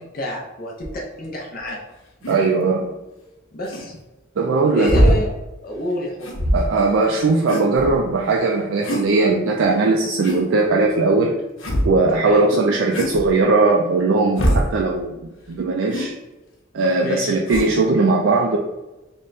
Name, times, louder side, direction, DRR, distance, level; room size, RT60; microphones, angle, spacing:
voice 1, 0.0-1.8 3.5-3.9 4.7-5.3 5.6-6.3 12.1-12.4 17.0-17.3, equal, 45° left, -2 dB, 0.6 m, -28 dB
sound 1, 0.8-0.9 2.2-2.4 3.6-3.9 4.8-5.2 6.2-6.8 7.5-8.1 8.8-9.1 10.2-10.4 11.6-12.0 12.9-13.3 14.4-14.7 15.9-16.1 17.5-17.7, equal, 80° left, 0.8 m, -21 dB
voice 2, 2.3-2.9 4.4-5.2 6.5-11.4 11.8-16.1 16.7-18.6, right 3 dB, 70° right, 0 dB, 0.4 m, -19 dB
3.4 x 2.1 x 3.9 m, 1.0 s
head